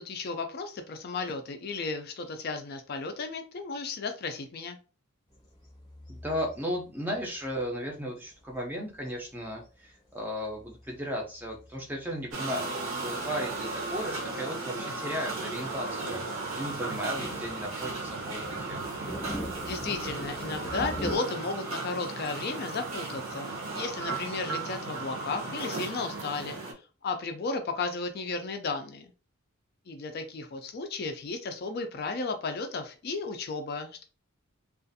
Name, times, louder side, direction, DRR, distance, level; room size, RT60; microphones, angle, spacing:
voice 1, 0.0-4.8 19.6-26.6 27.0-29.1 29.9-34.0, left 4 dB, 45° left, 6 dB, 0.3 m, -34 dB
sound 1, 5.3-7.6 8.2-9.7 10.5-12.4 13.0-13.1 13.5-14.4 15.2-21.2, equal, 20° left, 0.8 m, -43 dB
voice 2, 6.1-18.8, equal, 10° right, -1 dB, 0.5 m, -35 dB
sound 2, 12.3-26.7, right 3 dB, 70° right, 0.7 m, -35 dB
2.4 x 2.4 x 2.6 m, 0.35 s
head